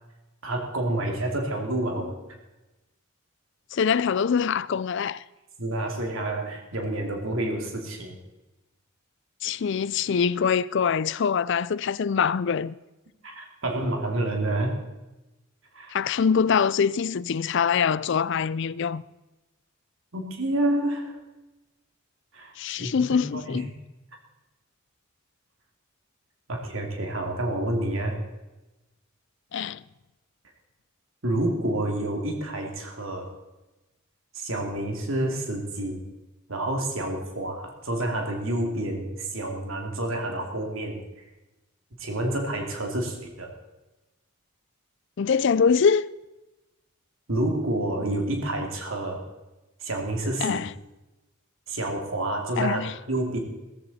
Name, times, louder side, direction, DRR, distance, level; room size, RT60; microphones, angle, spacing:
voice 1, 0.4-2.1 5.6-8.2 13.2-14.8 15.7-15.9 20.1-21.2 22.3-23.8 26.5-28.2 31.2-33.3 34.3-36.0 36.5-41.0 42.0-43.5 47.3-49.2 49.8-50.6 51.7-52.8 53.1-53.4, right 1 dB, 75° right, 2.7 m, -29 dB
voice 2, 3.7-5.2 9.4-12.7 15.9-19.0 22.6-23.7 29.5-29.8 45.2-46.1 50.4-50.7 52.6-52.9, left 6 dB, 60° left, 0.4 m, -24 dB
16.5 x 15.0 x 4.2 m
head